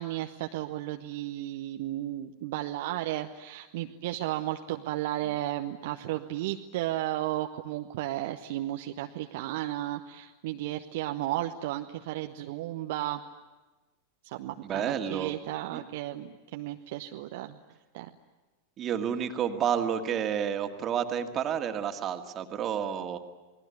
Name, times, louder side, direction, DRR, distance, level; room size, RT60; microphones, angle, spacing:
voice 1, 0.0-13.2 14.2-17.6 17.9-18.1, right 14 dB, 50° right, 5 dB, 0.9 m, -34 dB
voice 2, 14.6-15.4 15.7-15.8 18.8-23.2, right 8 dB, 30° right, 6 dB, 2.1 m, -30 dB
28.5 x 20.0 x 9.7 m, 1.2 s
figure-of-eight pair, 90°, 0 cm